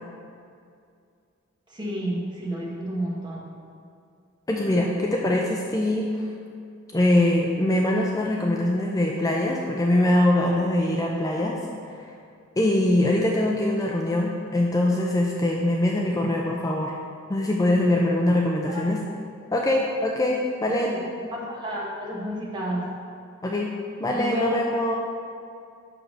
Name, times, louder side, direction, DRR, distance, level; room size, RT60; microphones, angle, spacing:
voice 1, 1.7-3.5 18.7-18.9 20.7-21.1 21.3-22.9 24.1-24.6, equal, 20° right, -4 dB, 1.3 m, -31 dB
voice 2, 4.5-6.3 6.9-11.6 12.6-16.9 17.3-19.0 19.5-21.0 23.4-23.7 24.0-25.0, left 1 dB, 15° left, -1 dB, 0.4 m, -23 dB
5.9 x 5.1 x 6.4 m, 2.3 s
head